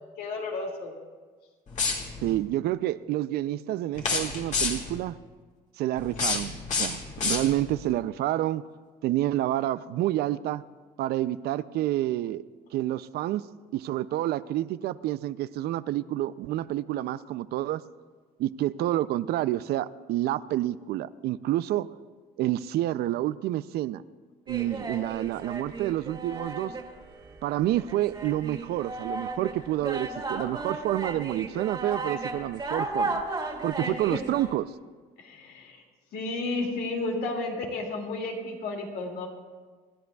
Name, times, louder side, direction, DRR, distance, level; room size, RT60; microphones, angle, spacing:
voice 1, 0.2-0.9 33.8-34.2 35.2-35.8 36.1-39.3, left 2 dB, 70° left, 2.3 m, -32 dB
sound 1, 1.7-2.4 3.9-5.0 6.0-7.8, left 4 dB, 45° left, 2.1 m, -29 dB
voice 2, 2.2-5.2 5.8-8.7 9.0-10.6 11.0-12.4 12.7-13.5 13.7-17.8 18.4-21.9 22.4-24.0 24.5-26.8 27.4-33.2 33.6-34.7, right 14 dB, 70° right, 0.4 m, -28 dB
sound 2, 24.5-34.6, right 3 dB, 25° right, 2.2 m, -35 dB
26.0 x 11.0 x 2.3 m
cardioid pair, 110°, 17 cm